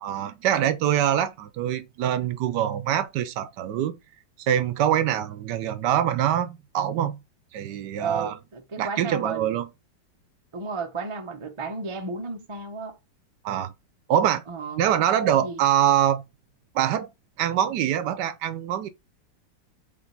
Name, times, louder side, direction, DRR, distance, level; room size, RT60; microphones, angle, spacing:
voice 1, 0.0-4.0 4.4-7.2 7.5-8.4 8.8-9.7 13.4-13.7 14.1-14.4 14.8-16.2 16.7-17.1 17.4-18.9, right 10 dB, 75° right, 1.1 m, -24 dB
voice 2, 8.0-9.6 10.5-13.0 14.5-14.8 15.4-15.6, right 4 dB, 45° right, 0.3 m, -33 dB
3.7 x 3.5 x 3.9 m
omnidirectional pair, 2.0 m